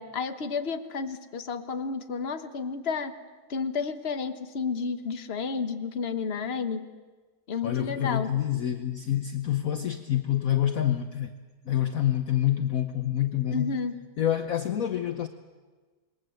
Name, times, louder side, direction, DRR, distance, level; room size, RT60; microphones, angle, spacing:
voice 1, 0.0-3.1 3.5-6.9 7.5-8.3 13.5-14.0, left 5 dB, 40° left, 1.4 m, -31 dB
voice 2, 7.6-11.3 11.7-13.7 14.2-15.3, left 11 dB, 55° left, 1.2 m, -27 dB
27.5 x 22.0 x 7.9 m
omnidirectional pair, 1.9 m